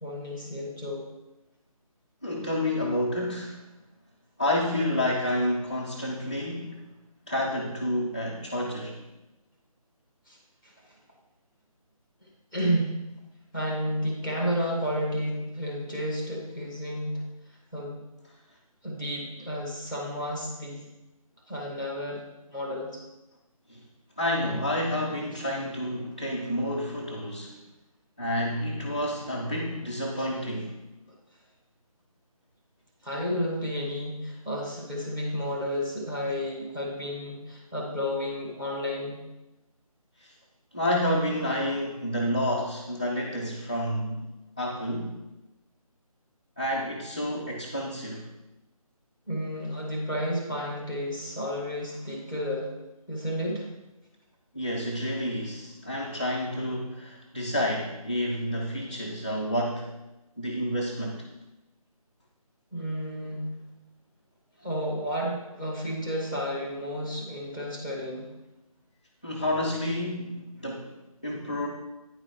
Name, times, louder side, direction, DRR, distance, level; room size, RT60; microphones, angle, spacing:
voice 1, 0.0-1.0 10.3-10.4 10.6-10.7 12.5-13.0 13.5-17.2 17.7-18.0 18.8-20.9 21.5-23.0 30.2-30.3 33.0-39.2 49.3-52.7 53.1-53.7 62.7-63.6 64.6-68.3, equal, 5° right, -2 dB, 0.7 m, -31 dB
voice 2, 2.2-3.6 4.4-6.8 7.3-9.0 23.7-23.8 24.2-27.5 28.2-30.8 40.2-40.3 40.7-44.3 44.6-45.2 46.6-48.3 54.5-59.9 60.4-61.2 69.2-70.9 71.2-71.7, left 1 dB, 15° left, -6 dB, 0.4 m, -29 dB
9.3 x 4.9 x 4.4 m, 0.99 s
figure-of-eight pair, 155°, 19 cm